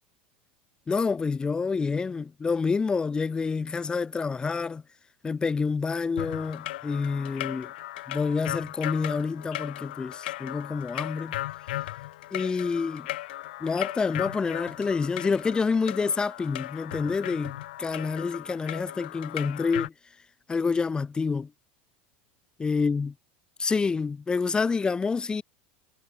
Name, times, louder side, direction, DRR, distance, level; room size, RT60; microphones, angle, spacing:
voice 1, 0.9-4.8 5.2-7.7 8.1-11.4 12.3-13.1 13.6-19.9 20.5-21.5 22.6-23.1 23.6-25.4, left 4 dB, 15° left, 1.1 m, -28 dB
sound 1, 6.2-19.9, left 16 dB, 85° left, 2.6 m, -37 dB
supercardioid pair, 130°, 5 cm